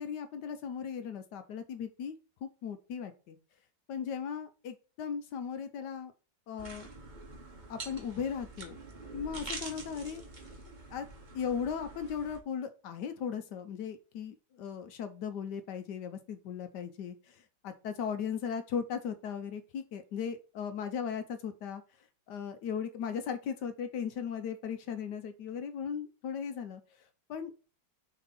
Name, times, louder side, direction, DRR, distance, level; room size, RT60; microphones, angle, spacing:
voice 1, 0.0-3.4 3.9-6.1 6.5-6.9 7.7-8.8 9.1-10.2 10.9-11.1 11.3-21.8 22.3-26.8 27.3-27.5, left 7 dB, 75° left, 9 dB, 1.3 m, -37 dB
sound 1, 6.6-12.4, right 2 dB, 30° right, 1.3 m, -46 dB
6.7 x 3.5 x 4.1 m, 0.35 s
omnidirectional pair, 1.9 m